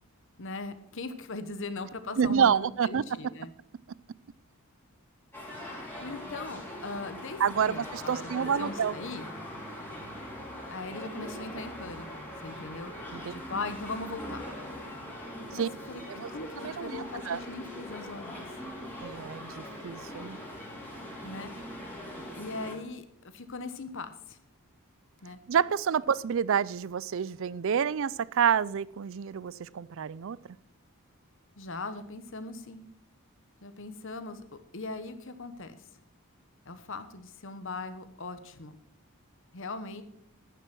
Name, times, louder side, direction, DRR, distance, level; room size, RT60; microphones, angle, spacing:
voice 1, 0.4-3.5 6.0-7.4 7.7-9.2 10.7-12.9 13.3-14.4 15.5-18.5 21.2-21.5 22.3-23.1 23.3-24.4 25.2-25.4 31.6-32.8 33.6-35.8 36.7-38.7 39.5-40.0, left 3 dB, 60° left, 10 dB, 1.2 m, -39 dB
voice 2, 2.2-3.0 5.7-5.8 7.4-8.9 13.1-13.3 15.5-15.7 16.1-16.3 16.6-17.4 19.0-20.4 25.5-30.4, right 7 dB, 60° right, 21 dB, 0.4 m, -28 dB
sound 1, 5.3-22.8, equal, 10° left, 3.4 m, -41 dB
10.5 x 9.9 x 6.1 m, 0.74 s
head